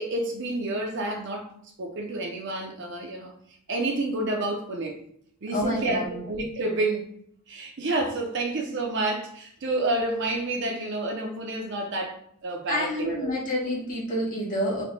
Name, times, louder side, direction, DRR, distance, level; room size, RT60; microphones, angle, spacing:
voice 1, 0.0-1.5 1.8-3.3 3.7-5.0 5.4-7.1 7.5-13.3, right 2 dB, 55° right, 0.6 m, -29 dB
voice 2, 5.5-6.2 12.7-14.8, left 1 dB, 35° left, 1.5 m, -28 dB
3.5 x 2.2 x 3.7 m
head